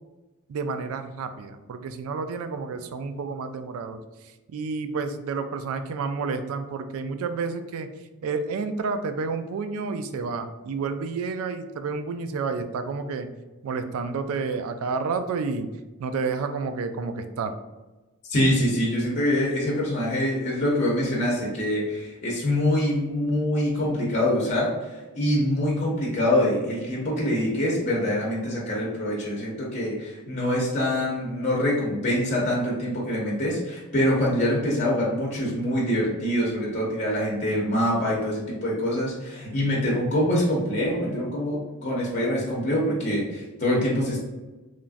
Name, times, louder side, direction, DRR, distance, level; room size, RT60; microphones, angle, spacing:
voice 1, 0.5-4.0 4.5-7.9 8.2-13.3 13.6-15.7 16.0-17.5, right 4 dB, 65° right, 10 dB, 0.3 m, -30 dB
voice 2, 18.3-44.2, left 1 dB, 35° left, -4 dB, 0.6 m, -25 dB
3.0 x 2.4 x 2.5 m, 1.1 s
head